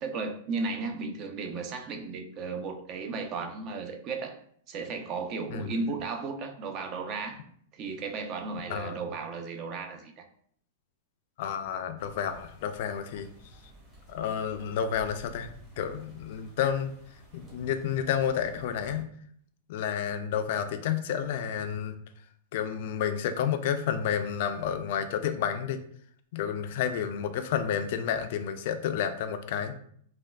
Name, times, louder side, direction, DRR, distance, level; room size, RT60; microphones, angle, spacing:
voice 1, 0.0-4.4 4.7-7.4 7.7-10.2, right 4 dB, 40° right, 5 dB, 0.4 m, -35 dB
voice 2, 11.4-13.3 14.1-15.5 15.8-16.9 17.3-19.1 19.7-21.9 22.5-25.8 26.3-29.8, left 8 dB, 60° left, 9 dB, 0.3 m, -30 dB
sound 1, 12.0-19.0, right 1 dB, 20° right, 1.1 m, -52 dB
3.4 x 2.2 x 2.2 m, 0.62 s
hypercardioid pair, 130°, 0 cm